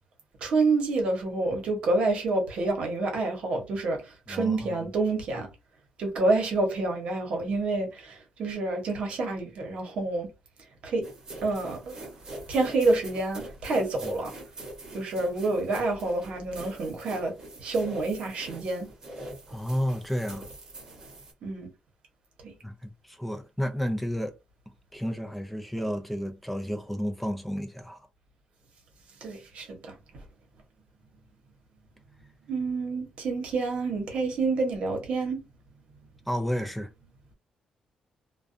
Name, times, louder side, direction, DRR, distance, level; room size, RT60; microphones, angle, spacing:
voice 1, 0.4-4.0 4.3-5.5 6.0-10.3 10.8-11.1 11.4-11.9 12.5-14.3 14.9-17.3 17.6-18.9 21.4-21.7 22.4-22.5 29.2-30.0 32.5-35.4, right 3 dB, 60° right, 0.9 m, -28 dB
voice 2, 4.3-4.9 19.5-20.5 22.6-24.3 24.9-28.0 36.3-36.9, equal, 5° left, 0.4 m, -31 dB
sound 1, 11.0-21.3, right 1 dB, 30° right, 0.9 m, -43 dB
2.3 x 2.2 x 2.5 m
cardioid pair, 155°, 2 cm